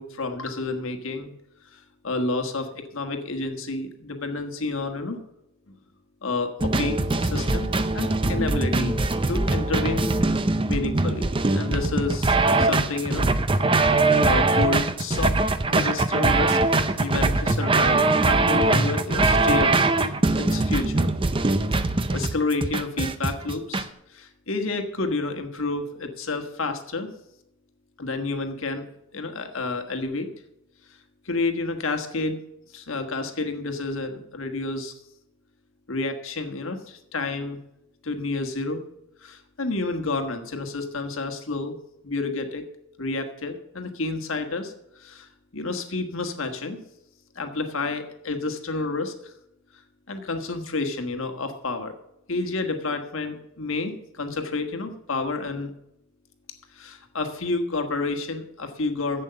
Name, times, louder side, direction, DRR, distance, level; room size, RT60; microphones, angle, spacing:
voice 1, 0.0-1.3 1.6-5.2 6.2-9.0 9.3-10.1 10.7-13.3 13.8-15.4 15.7-16.6 17.0-21.1 22.1-27.1 28.0-28.8 29.1-30.3 30.9-31.0 31.2-32.4 32.7-35.0 35.9-37.6 38.0-38.8 39.2-41.8 42.0-42.6 43.0-46.8 47.3-49.3 50.1-51.9 52.3-55.7 56.7-59.2, left 3 dB, 70° left, 5 dB, 1.5 m, -30 dB
sound 1, 6.6-23.8, right 2 dB, 25° right, 0.5 m, -22 dB
11.0 x 8.0 x 6.9 m, 0.83 s
head